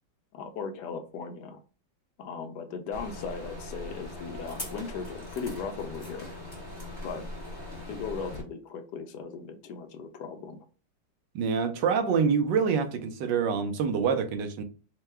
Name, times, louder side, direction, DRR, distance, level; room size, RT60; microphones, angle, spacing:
voice 1, 0.3-1.6 2.2-6.3 7.0-7.3 7.9-10.6, left 5 dB, 75° left, 1.2 m, -37 dB
sound 1, 2.9-8.4, left 1 dB, 15° left, 0.8 m, -40 dB
voice 2, 11.3-14.6, right 6 dB, 90° right, 1.4 m, -26 dB
4.5 x 2.2 x 3.3 m
omnidirectional pair, 1.9 m